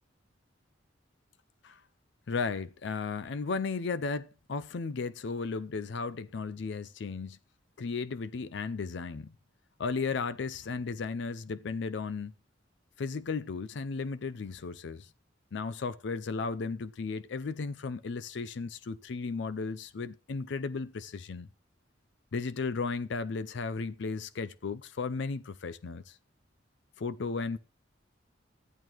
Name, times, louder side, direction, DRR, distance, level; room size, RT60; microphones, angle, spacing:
voice 1, 2.3-7.4 7.8-9.3 9.8-12.3 13.0-15.1 15.5-21.5 22.3-26.2 27.0-27.6, left 4 dB, 65° left, 0.5 m, -35 dB
14.5 x 10.5 x 3.0 m
head